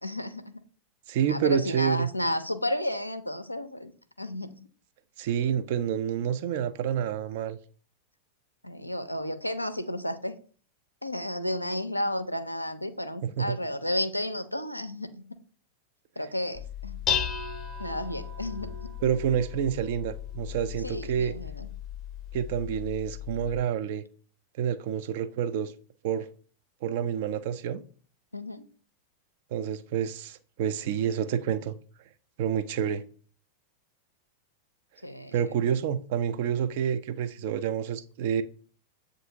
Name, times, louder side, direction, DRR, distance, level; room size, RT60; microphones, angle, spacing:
voice 1, 0.0-0.6 1.3-3.9 4.2-4.6 8.6-10.4 11.0-15.1 16.2-17.0 17.8-18.7 20.8-21.7 28.3-28.6 35.0-35.4, left 1 dB, 85° left, 0.4 m, -32 dB
voice 2, 1.1-2.1 5.2-7.6 13.2-13.6 19.0-21.4 22.3-24.0 24.6-25.7 26.0-26.3 26.8-27.8 29.5-31.7 32.4-33.0 35.3-38.4, right 8 dB, 50° right, 0.4 m, -28 dB
Dishes pots and pans, 16.5-23.6, left 8 dB, 25° left, 0.6 m, -35 dB
7.5 x 2.6 x 2.7 m
figure-of-eight pair, 90°, 0 cm